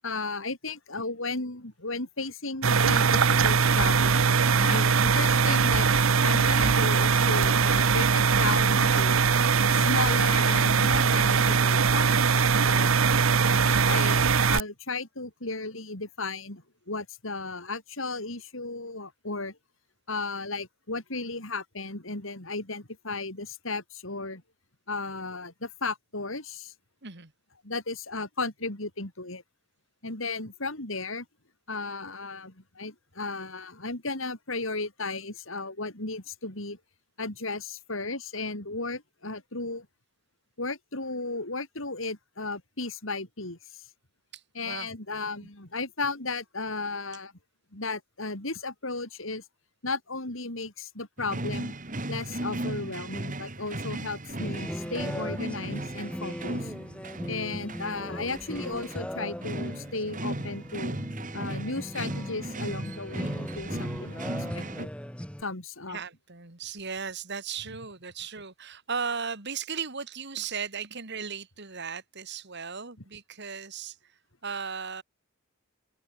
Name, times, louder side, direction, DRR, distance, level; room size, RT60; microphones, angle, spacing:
voice 1, 0.0-5.9 6.2-9.3 9.7-12.9 13.4-19.6 20.1-24.4 24.9-26.7 27.6-29.4 30.0-31.3 31.7-36.8 37.2-39.9 40.6-43.6 44.5-47.3 47.7-49.4 49.8-51.7 52.1-56.7 57.3-61.0 61.3-64.9 65.4-66.0, left 3 dB, 65° left, 4.3 m, -35 dB
sound 1, 2.6-14.6, right 5 dB, 75° right, 0.9 m, -21 dB
voice 2, 44.3-44.9 65.9-74.0 74.4-75.0, right 6 dB, 55° right, 2.8 m, -36 dB
sound 2, 51.2-64.9, right 1 dB, 40° right, 2.6 m, -36 dB
sound 3, 54.3-65.4, equal, 5° left, 2.3 m, -38 dB
open air
head